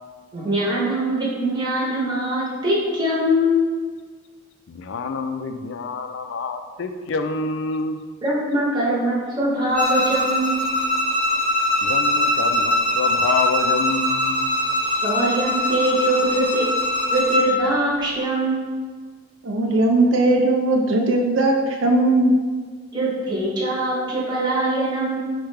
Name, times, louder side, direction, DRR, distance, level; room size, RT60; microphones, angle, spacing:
voice 1, 0.3-3.6 8.2-10.7 15.0-16.7 17.1-18.7 22.9-25.2, right 1 dB, 20° right, -6 dB, 0.8 m, -22 dB
voice 2, 4.7-8.0 11.8-14.5 14.8-15.0, left 4 dB, 55° left, 8 dB, 0.3 m, -27 dB
Bowed string instrument, 9.7-17.5, left 1 dB, 5° left, 0.9 m, -22 dB
voice 3, 19.4-22.3, right 2 dB, 60° right, 2 dB, 0.5 m, -18 dB
4.7 x 2.2 x 4.7 m, 1.6 s
head